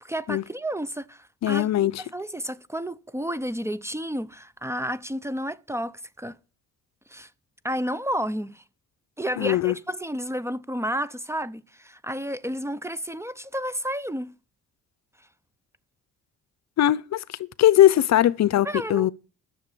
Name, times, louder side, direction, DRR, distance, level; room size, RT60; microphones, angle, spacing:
voice 1, 0.0-6.4 7.1-7.3 7.6-8.6 9.2-14.3 18.6-19.1, equal, 10° right, 0.6 m, -31 dB
voice 2, 1.4-2.0 9.4-9.7 16.8-17.2 17.6-19.1, left 12 dB, 60° left, 0.7 m, -20 dB
11.0 x 7.0 x 8.4 m
cardioid pair, 90°, 30 cm